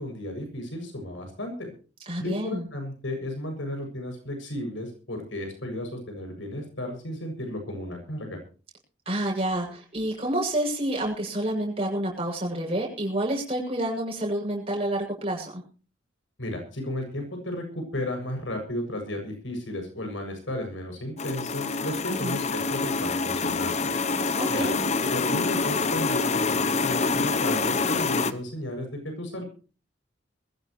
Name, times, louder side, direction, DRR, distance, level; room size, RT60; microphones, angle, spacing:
voice 1, 0.0-1.7 2.2-8.4 16.4-23.9 24.5-24.7 25.0-29.4, left 1 dB, 90° left, 4 dB, 7.5 m, -34 dB
voice 2, 2.1-2.7 9.1-15.6 22.1-22.4 24.3-24.8, right 1 dB, 30° right, 0 dB, 7.7 m, -29 dB
sound 1, 21.2-28.3, left 4 dB, 35° left, 0.9 m, -26 dB
22.5 x 15.5 x 3.2 m, 0.37 s
head